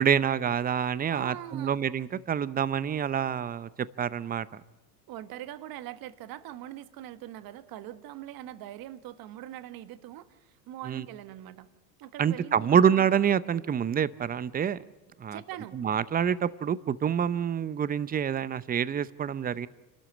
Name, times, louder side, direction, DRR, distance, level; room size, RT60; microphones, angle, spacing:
voice 1, 0.0-3.7 4.0-4.6 10.9-11.0 12.2-14.8 15.2-15.4 15.7-19.7, right 8 dB, 20° right, 0.7 m, -27 dB
voice 2, 1.1-1.8 5.1-11.7 12.0-13.1 15.3-15.8, right 12 dB, 45° right, 1.4 m, -42 dB
27.5 x 12.5 x 8.8 m
supercardioid pair, 105°, 48 cm